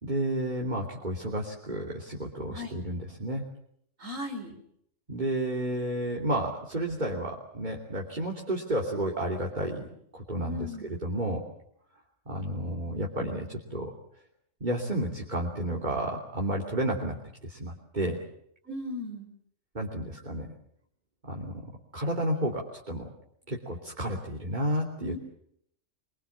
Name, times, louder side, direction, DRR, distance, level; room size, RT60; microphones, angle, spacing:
voice 1, 0.0-3.4 5.1-9.9 10.1-10.6 11.0-11.4 12.3-13.9 14.6-17.2 17.4-18.2 19.7-20.5 21.3-21.5 21.9-23.1 23.5-25.1, right 1 dB, 35° right, -1 dB, 3.2 m, -31 dB
voice 2, 4.0-4.6 10.4-10.8 18.6-19.3 25.0-25.2, left 2 dB, 85° right, 5 dB, 5.0 m, -37 dB
25.0 x 24.0 x 7.3 m, 0.71 s
omnidirectional pair, 1.3 m